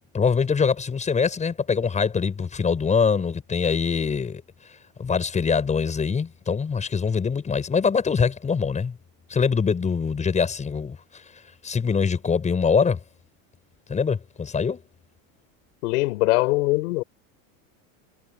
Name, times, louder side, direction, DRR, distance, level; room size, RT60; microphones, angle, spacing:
voice 1, 0.1-4.4 5.0-9.0 9.3-11.2 11.6-13.0 13.9-14.8, left 5 dB, 15° left, 7.1 m, -23 dB
voice 2, 15.8-17.0, left 22 dB, 90° left, 6.7 m, -22 dB
cardioid pair, 160°, 41 cm